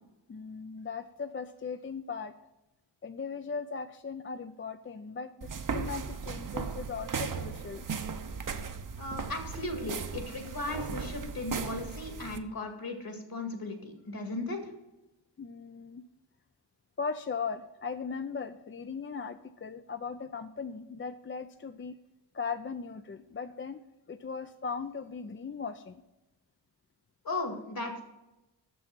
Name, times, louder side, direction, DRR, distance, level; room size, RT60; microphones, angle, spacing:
voice 1, 0.3-2.3 3.0-7.9 15.4-16.1 17.0-21.9 22.3-23.8 24.1-26.0, left 5 dB, 30° left, 9 dB, 0.4 m, -38 dB
sound 1, 5.4-12.4, right 5 dB, 45° right, 0.7 m, -37 dB
voice 2, 9.0-14.6 27.2-28.0, left 2 dB, 55° left, 3 dB, 2.1 m, -36 dB
6.9 x 6.1 x 6.1 m, 0.98 s
wide cardioid pair, 70°, 43 cm